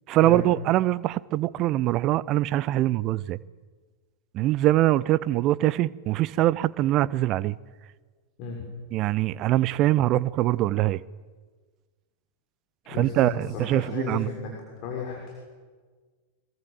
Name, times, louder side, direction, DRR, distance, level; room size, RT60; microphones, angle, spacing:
voice 1, 0.1-3.4 4.3-7.6 8.9-11.0 12.9-14.3, right 15 dB, 35° right, 0.7 m, -23 dB
voice 2, 12.9-14.5 14.8-15.2, left 5 dB, 40° left, 6.2 m, -33 dB
25.5 x 22.5 x 7.8 m
figure-of-eight pair, 90°, 0 cm